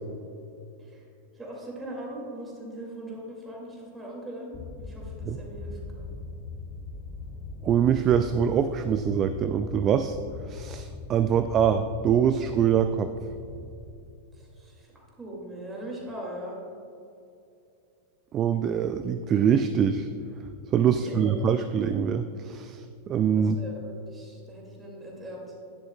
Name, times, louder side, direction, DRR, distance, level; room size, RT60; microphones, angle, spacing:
voice 1, 1.3-6.1 14.3-16.6 20.8-21.4 23.4-25.4, right 1 dB, 15° right, -2 dB, 2.2 m, -40 dB
sound 1, 4.5-14.6, left 4 dB, 20° left, 1.5 m, -41 dB
voice 2, 7.6-10.2 10.5-13.1 18.3-20.1 20.7-23.6, right 8 dB, 30° right, 10 dB, 0.3 m, -24 dB
10.5 x 10.5 x 2.2 m, 2.6 s
figure-of-eight pair, 90°, 0 cm